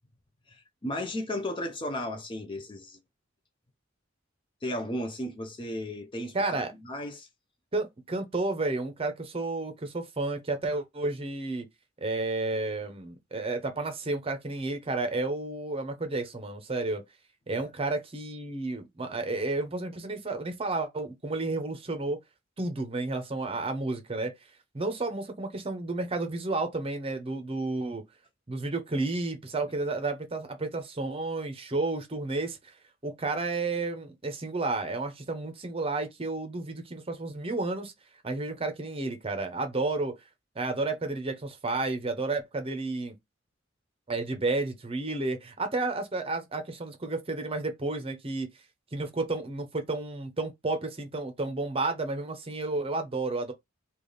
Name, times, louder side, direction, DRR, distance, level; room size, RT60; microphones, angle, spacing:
voice 1, 0.5-3.0 4.6-7.3 17.5-17.6, left 1 dB, 25° left, 0.5 m, -35 dB
voice 2, 6.3-6.7 7.7-11.7 12.0-17.0 17.5-22.2 22.6-24.3 24.7-28.0 28.5-32.7 33.0-37.9 38.2-40.1 40.6-43.1 44.1-48.5 48.9-53.5, right 2 dB, 30° right, 0.7 m, -31 dB
3.3 x 2.4 x 3.8 m
head